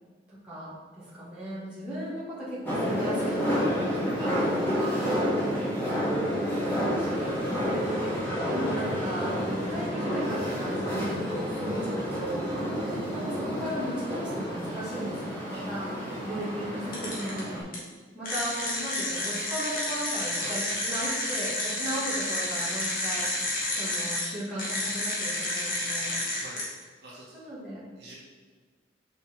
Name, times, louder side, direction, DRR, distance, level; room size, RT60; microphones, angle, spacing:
voice 1, 0.3-5.0 6.0-7.4 8.5-15.9 16.2-17.7 18.1-26.2 27.3-27.8, right 1 dB, 5° right, -10 dB, 2.0 m, -36 dB
sound 1, 2.7-17.6, equal, 10° left, 1.8 m, -29 dB
sound 2, 16.9-17.4 17.7-17.8 18.2-24.2 24.6-26.6, left 1 dB, 50° left, 1.8 m, -30 dB
voice 2, 27.0-27.4 28.0-28.1, right 1 dB, 65° right, -6 dB, 2.0 m, -46 dB
5.8 x 4.9 x 4.5 m, 1.5 s
head